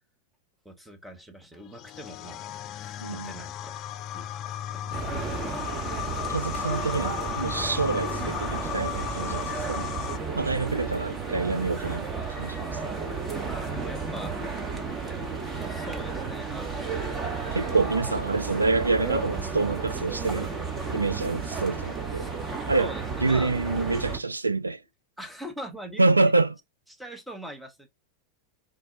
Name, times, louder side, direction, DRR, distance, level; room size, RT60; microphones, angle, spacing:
voice 1, 0.6-2.4 2.7-3.9 4.1-4.3 4.7-5.3 8.2-8.4 13.4-14.8 15.6-17.1 22.1-22.3 22.8-23.5 25.2-26.3 26.9-27.9, equal, 5° right, 0.9 m, -42 dB
sound 1, 1.7-10.2, left 12 dB, 35° left, 0.3 m, -35 dB
voice 2, 3.0-3.4 6.3-9.9 10.4-12.1 12.4-12.7 17.5-20.5 20.9-22.3 22.7-22.9 23.2-24.8 26.0-26.5, right 3 dB, 80° right, 0.3 m, -26 dB
sound 2, 4.9-24.2, right 4 dB, 25° right, 1.2 m, -33 dB
3.8 x 2.3 x 3.9 m
figure-of-eight pair, 90°, 0 cm